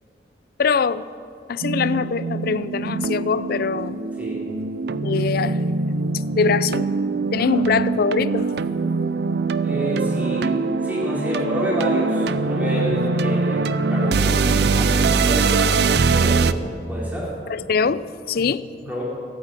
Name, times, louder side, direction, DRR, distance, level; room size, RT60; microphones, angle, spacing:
voice 1, 0.6-1.1 1.5-4.1 5.0-5.6 6.3-6.9 7.3-8.5 17.5-18.7, left 5 dB, 60° left, 16 dB, 0.4 m, -23 dB
sound 1, 1.6-16.5, right 4 dB, 65° right, 0.5 m, -22 dB
voice 2, 9.6-13.6 13.9-16.5 16.9-17.3 18.9-19.0, equal, 10° right, -5 dB, 4.2 m, -28 dB
15.5 x 9.1 x 8.9 m, 2.5 s
head